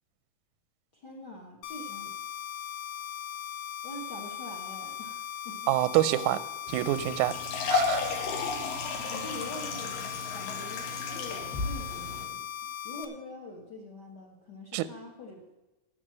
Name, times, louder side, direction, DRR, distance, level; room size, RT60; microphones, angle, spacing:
voice 1, 0.9-2.1 3.8-5.7 9.0-10.0 10.3-12.5 12.8-15.6, left 1 dB, 45° left, 2 dB, 1.4 m, -44 dB
sound 1, 1.6-13.0, left 9 dB, 70° left, 1.8 m, -39 dB
voice 2, 5.7-6.4 6.7-7.3 7.7-8.2 14.7-14.9, right 15 dB, 80° right, 16 dB, 1.8 m, -26 dB
sound 2, 6.7-12.3, left 4 dB, 90° left, 3.4 m, -33 dB
12.0 x 6.6 x 7.5 m, 1.0 s
omnidirectional pair, 3.9 m